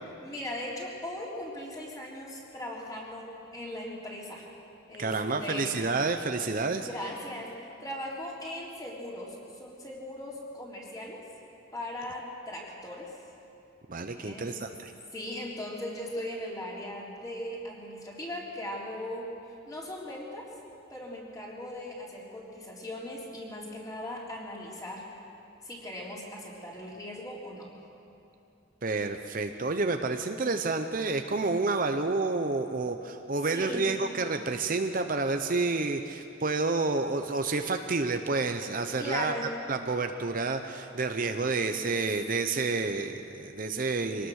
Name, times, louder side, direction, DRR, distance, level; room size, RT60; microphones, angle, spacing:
voice 1, 0.2-4.4 4.9-5.8 6.8-7.5 7.8-11.2 11.7-13.1 14.1-14.5 15.1-19.3 19.7-20.5 20.9-25.1 25.6-27.7 33.5-33.9 39.0-39.5, left 1 dB, 20° left, -4 dB, 3.8 m, -39 dB
voice 2, 5.0-6.9 13.9-14.9 28.8-39.3 39.7-44.3, right 3 dB, 45° right, 6 dB, 0.8 m, -29 dB
25.0 x 19.0 x 6.5 m, 2.9 s
head